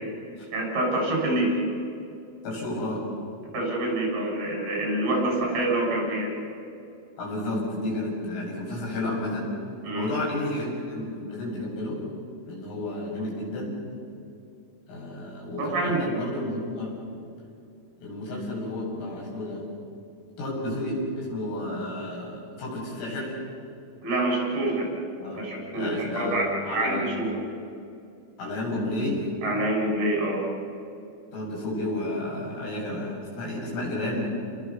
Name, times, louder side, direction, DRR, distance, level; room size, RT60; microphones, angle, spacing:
voice 1, 0.5-1.6 3.5-6.3 9.8-10.1 15.6-16.0 24.0-24.9 25.3-27.3 29.4-30.4, right 1 dB, 50° right, -1 dB, 8.5 m, -26 dB
voice 2, 2.4-3.0 7.2-9.5 9.9-12.0 12.4-13.8 14.9-17.0 18.0-19.6 20.4-23.3 25.2-25.4 25.7-27.1 28.4-29.2 31.3-34.3, left 1 dB, 85° left, -3 dB, 9.8 m, -31 dB
29.5 x 21.5 x 7.1 m, 2.6 s
omnidirectional pair, 5.7 m